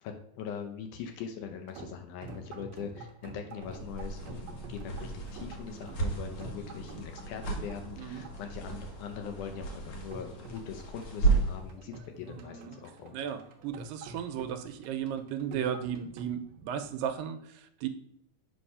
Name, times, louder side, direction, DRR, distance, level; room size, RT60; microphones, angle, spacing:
voice 1, 0.0-13.2, left 7 dB, 75° left, 5 dB, 2.0 m, -42 dB
sound 1, 1.5-17.2, right 2 dB, 65° right, 1.9 m, -48 dB
sound 2, 3.6-11.7, right 4 dB, 60° left, 1.5 m, -34 dB
voice 2, 12.4-12.8 13.1-17.9, right 9 dB, 85° right, 8 dB, 2.3 m, -35 dB
7.8 x 3.2 x 5.5 m, 0.71 s
omnidirectional pair, 4.0 m